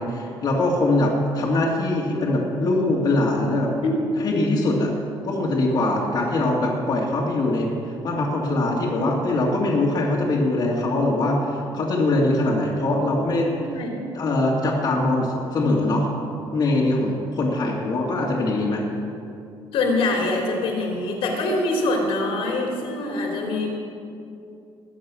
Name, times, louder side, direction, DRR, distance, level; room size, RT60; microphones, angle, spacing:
voice 1, 0.0-3.7 4.2-4.9 5.2-13.5 14.1-16.1 16.5-18.8, left 2 dB, 45° left, -3 dB, 2.2 m, -22 dB
voice 2, 13.5-13.9 17.7-17.9 19.7-23.7, left 2 dB, 80° left, 0 dB, 3.1 m, -24 dB
20.5 x 7.2 x 6.2 m, 2.6 s
cardioid pair, 135°, 9 cm